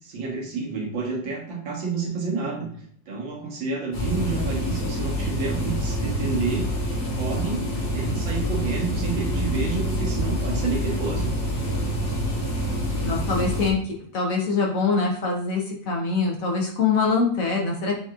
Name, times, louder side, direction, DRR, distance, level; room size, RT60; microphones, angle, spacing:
voice 1, 0.0-2.7 3.1-6.8 7.1-7.7 7.9-11.3, right 4 dB, 85° right, -1 dB, 1.9 m, -29 dB
sound 1, 3.9-13.7, equal, 90° left, 2.0 m, -26 dB
voice 2, 13.0-18.0, left 4 dB, 55° left, -1 dB, 1.0 m, -24 dB
7.0 x 2.8 x 2.4 m, 0.62 s
omnidirectional pair, 2.0 m